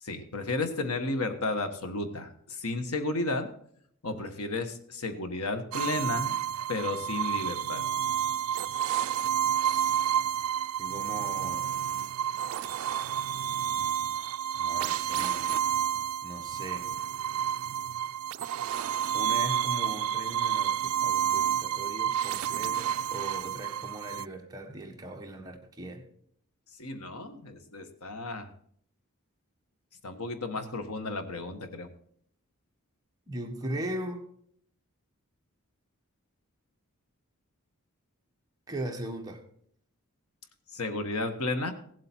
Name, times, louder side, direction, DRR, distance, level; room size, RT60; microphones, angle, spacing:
voice 1, 0.0-3.5 4.0-6.4 6.7-7.8 26.8-28.5 30.0-31.9 40.7-41.7, left 2 dB, 80° left, 8 dB, 1.3 m, -33 dB
sound 1, 5.7-24.3, right 9 dB, 75° right, 0.4 m, -30 dB
voice 2, 9.6-10.2 10.8-11.7 14.5-15.5 16.2-16.9 19.1-26.0 33.3-34.2 38.7-39.4, right 1 dB, 15° right, 1 dB, 1.4 m, -39 dB
16.5 x 7.8 x 4.4 m, 0.65 s
head